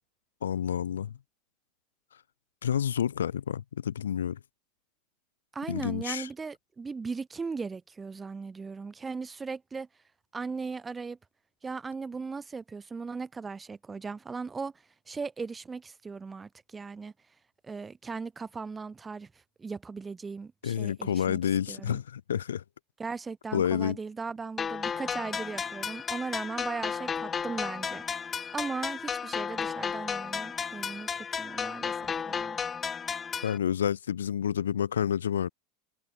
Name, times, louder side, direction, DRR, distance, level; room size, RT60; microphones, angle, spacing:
voice 1, 0.4-1.1 2.6-4.4 5.7-6.3 20.6-22.6 23.5-24.0 33.4-35.5, left 9 dB, 85° left, 1.8 m, -29 dB
voice 2, 5.5-9.9 10.3-11.2 11.6-14.7 15.1-17.1 17.6-19.3 19.6-21.4 21.7-22.0 23.0-32.6, right 4 dB, 20° right, 2.4 m, -38 dB
sound 1, 24.6-33.6, left 6 dB, 30° left, 1.6 m, -33 dB
hypercardioid pair, 85°, 0 cm